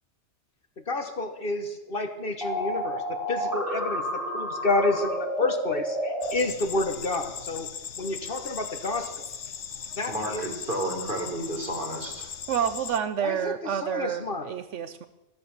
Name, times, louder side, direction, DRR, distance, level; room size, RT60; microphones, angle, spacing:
voice 1, 0.9-7.7 8.0-9.2 10.0-10.5 13.2-14.5, left 2 dB, 50° left, 7 dB, 1.6 m, -30 dB
sound 1, 2.4-6.3, equal, ahead, 2.9 m, -30 dB
sound 2, 6.2-13.0, left 7 dB, 75° left, 1.2 m, -39 dB
voice 2, 10.1-12.3, right 1 dB, 45° right, 1 dB, 3.9 m, -32 dB
voice 3, 12.5-15.1, right 8 dB, 80° right, 12 dB, 1.1 m, -29 dB
13.5 x 13.5 x 7.2 m, 0.97 s
omnidirectional pair, 1.2 m